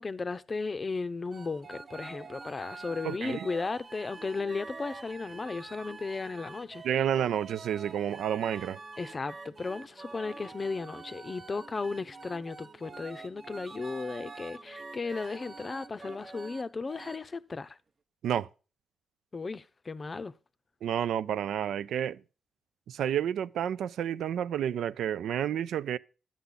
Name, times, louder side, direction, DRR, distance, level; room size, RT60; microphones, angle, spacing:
voice 1, 0.0-6.8 9.0-17.8 19.3-20.3, left 4 dB, 35° left, 0.6 m, -35 dB
sound 1, 1.3-16.6 16.9-17.2, right 3 dB, 40° right, 0.8 m, -46 dB
voice 2, 3.0-3.5 6.8-8.8 18.2-18.5 20.8-22.2 22.9-26.0, right 9 dB, 80° right, 0.4 m, -30 dB
10.5 x 8.2 x 3.8 m
cardioid pair, 75°, 0 cm